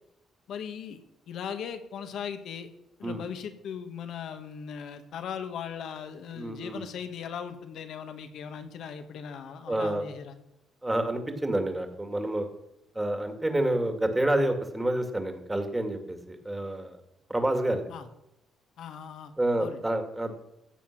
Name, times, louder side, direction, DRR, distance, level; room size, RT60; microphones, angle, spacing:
voice 1, 0.5-1.0 1.3-2.7 3.0-10.4 13.6-13.7 17.9-18.1 18.8-19.8, left 7 dB, 75° left, 8 dB, 1.5 m, -38 dB
voice 2, 6.3-6.8 9.7-10.0 10.8-12.5 12.9-17.0 17.3-17.9 19.4-20.3, right 1 dB, 15° right, 6 dB, 2.2 m, -28 dB
15.5 x 7.4 x 6.0 m, 0.84 s
cardioid pair, 90°, 0 cm